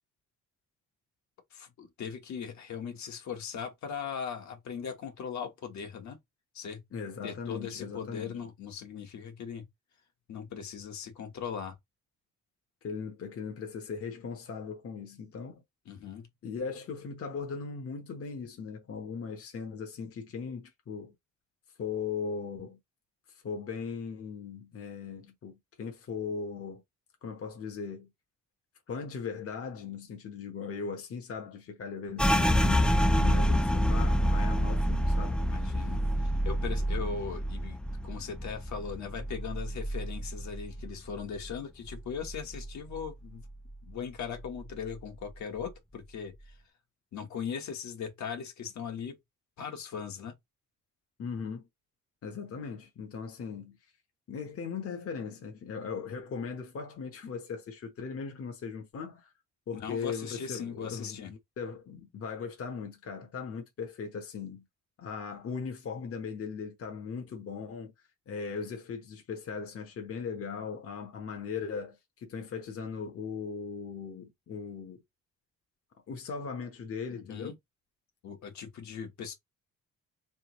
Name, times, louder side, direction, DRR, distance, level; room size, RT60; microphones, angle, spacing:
voice 1, 1.5-6.2 6.5-6.8 7.2-9.6 10.3-11.7 15.9-16.3 35.4-43.4 43.8-46.5 47.1-49.1 49.6-50.3 59.7-61.3 77.1-77.5 78.2-79.3, left 7 dB, 65° left, 1.3 m, -39 dB
voice 2, 6.9-8.4 12.8-15.5 16.4-21.1 21.8-22.8 23.3-26.8 27.2-28.1 28.9-35.4 51.2-51.7 52.2-53.8 54.3-59.3 59.7-64.6 65.0-67.9 68.3-75.0 76.1-77.6, left 5 dB, 50° left, 1.0 m, -38 dB
sound 1, 32.2-41.6 41.9-43.1 43.4-43.9 44.4-45.0, equal, 5° left, 0.4 m, -28 dB
3.6 x 3.5 x 3.0 m
cardioid pair, 90°, 30 cm